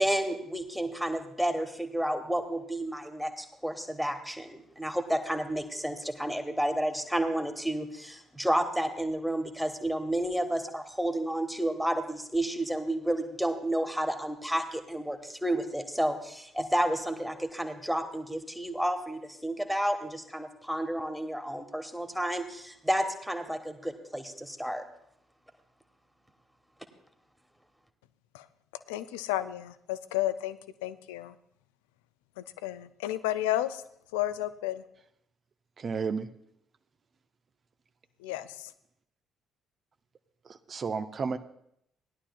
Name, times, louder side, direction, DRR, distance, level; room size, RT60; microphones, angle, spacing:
voice 1, 0.0-24.8, right 1 dB, ahead, 6 dB, 1.4 m, -31 dB
voice 2, 28.9-31.3 32.4-33.8 34.1-34.8 38.2-38.7, left 13 dB, 70° left, 14 dB, 0.4 m, -32 dB
voice 3, 35.8-36.3 40.4-41.4, right 5 dB, 40° right, 8 dB, 0.6 m, -32 dB
18.5 x 11.0 x 2.4 m, 0.73 s
figure-of-eight pair, 45°, 0 cm